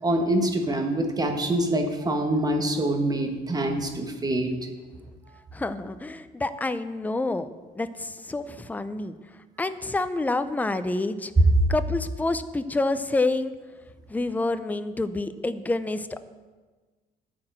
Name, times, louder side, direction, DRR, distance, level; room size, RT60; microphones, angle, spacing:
voice 1, 0.0-4.5, right 1 dB, 20° right, 4 dB, 1.4 m, -25 dB
voice 2, 5.5-7.5 7.8-9.1 9.6-11.3 11.7-13.5 14.1-16.2, left 2 dB, 10° left, 12 dB, 0.5 m, -28 dB
13.0 x 4.8 x 7.5 m, 1.3 s
cardioid pair, 110°, 17 cm